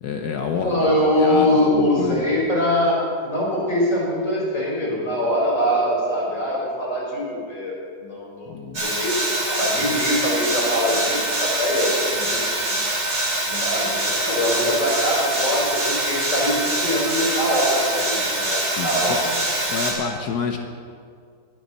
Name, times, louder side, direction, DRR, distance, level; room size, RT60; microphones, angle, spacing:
voice 1, 0.0-2.2 8.5-8.9 18.8-19.2 19.7-20.6, left 5 dB, 65° left, 4 dB, 1.3 m, -28 dB
voice 2, 0.5-8.5 8.8-9.1 9.4-12.7 13.5-19.4, equal, 45° left, -5 dB, 5.0 m, -23 dB
sound 1, 8.7-19.9, right 1 dB, 75° right, 3.9 m, -24 dB
21.0 x 9.5 x 4.2 m, 2.2 s
omnidirectional pair, 1.9 m